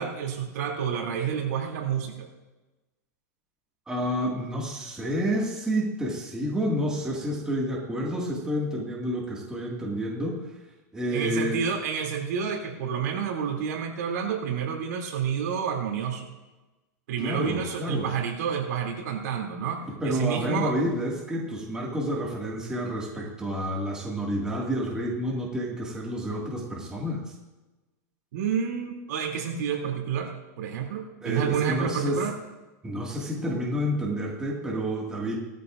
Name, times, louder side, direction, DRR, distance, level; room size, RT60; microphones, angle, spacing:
voice 1, 0.0-2.3 11.1-16.3 17.1-20.7 28.3-32.3, right 7 dB, 65° right, 1 dB, 2.9 m, -29 dB
voice 2, 3.9-10.5 10.9-11.6 17.2-18.1 19.9-27.2 31.2-32.2 32.8-35.3, equal, 5° right, -3 dB, 2.1 m, -29 dB
17.5 x 14.0 x 2.6 m, 1.1 s
supercardioid pair, 160°, 10 cm